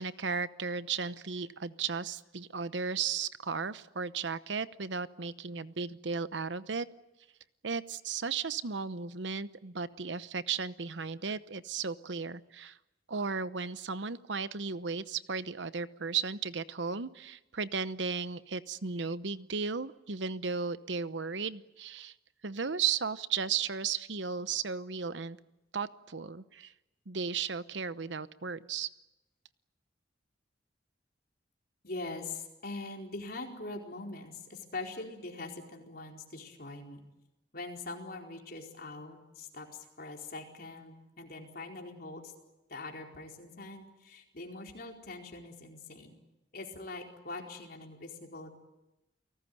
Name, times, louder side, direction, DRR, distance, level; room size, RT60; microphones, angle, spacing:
voice 1, 0.0-6.9 7.6-12.8 13.1-22.1 22.4-25.4 25.7-26.7 27.1-28.9, right 5 dB, 75° right, 14 dB, 0.9 m, -35 dB
voice 2, 31.8-37.0 37.5-42.3 42.7-46.1 46.5-48.5, left 2 dB, 55° left, 1 dB, 4.5 m, -43 dB
29.5 x 19.0 x 9.5 m, 0.97 s
head